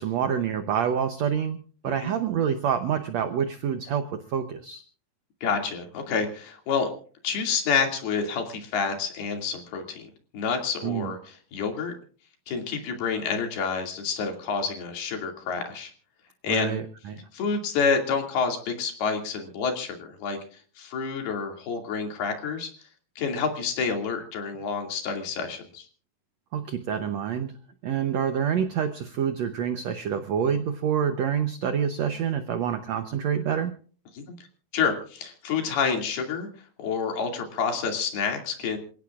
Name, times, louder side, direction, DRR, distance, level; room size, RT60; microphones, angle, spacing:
voice 1, 0.0-4.8 10.8-11.1 16.5-17.3 26.5-27.6 27.8-33.7, right 8 dB, 85° right, 9 dB, 1.5 m, -27 dB
voice 2, 5.4-6.9 7.2-10.1 10.3-11.2 11.5-11.9 12.5-15.9 16.4-16.7 17.3-20.4 20.8-22.7 23.2-25.9 34.2-34.3 34.7-36.5 36.8-38.8, left 5 dB, 85° left, 3 dB, 4.5 m, -28 dB
27.5 x 17.0 x 2.5 m, 0.42 s
omnidirectional pair, 4.4 m